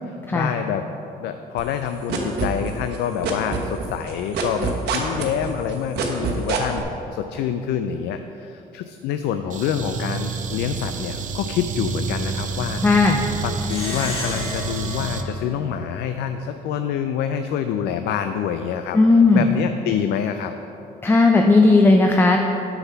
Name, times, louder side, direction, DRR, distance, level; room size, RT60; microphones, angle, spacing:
voice 1, 0.1-0.8 1.2-12.8 13.4-19.0 19.3-20.5, left 8 dB, 75° left, 8 dB, 0.4 m, -27 dB
sound 1, 1.6-3.0 3.2-6.8, right 5 dB, 75° right, 1.1 m, -25 dB
sound 2, 9.5-15.2, right 5 dB, 50° right, 0.7 m, -29 dB
voice 2, 12.8-13.2 18.9-19.6 21.0-22.4, left 3 dB, 15° left, 3 dB, 0.5 m, -15 dB
Plucked string instrument, 13.6-16.4, left 2 dB, 35° left, 1.5 m, -33 dB
6.6 x 4.7 x 6.9 m, 3.0 s
cardioid pair, 110°, 17 cm